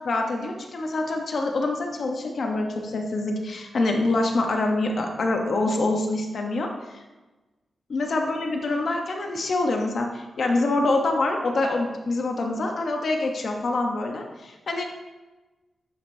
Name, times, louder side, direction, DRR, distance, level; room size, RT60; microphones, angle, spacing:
voice 1, 0.0-7.0 7.9-14.8, left 2 dB, 65° left, 2 dB, 0.9 m, -25 dB
8.8 x 5.1 x 2.7 m, 1.2 s
cardioid pair, 75°, 0 cm